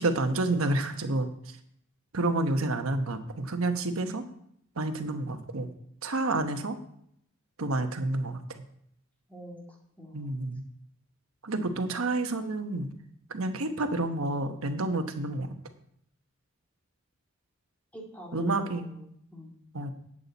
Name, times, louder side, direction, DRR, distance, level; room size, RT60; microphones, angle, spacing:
voice 1, 0.0-1.6 2.1-4.2 4.8-5.7 6.0-6.8 7.6-8.6 10.1-10.6 11.4-12.9 13.3-15.5 18.3-18.9 19.7-19.9, right 2 dB, 85° right, 7 dB, 1.1 m, -29 dB
voice 2, 9.3-9.6 10.0-10.3 17.9-19.6, equal, 5° left, -1 dB, 2.1 m, -46 dB
11.0 x 8.8 x 4.1 m, 0.70 s
head